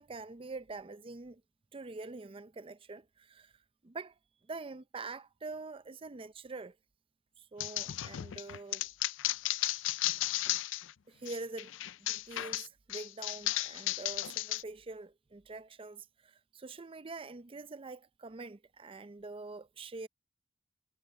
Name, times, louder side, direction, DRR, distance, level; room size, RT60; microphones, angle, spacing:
voice 1, 0.0-1.4 1.7-3.5 3.8-4.1 4.5-6.8 7.4-8.9 11.1-20.1, right 3 dB, 30° right, 0.5 m, -45 dB
sound 1, 7.6-10.9 11.3-14.6, left 16 dB, 80° left, 0.4 m, -34 dB
head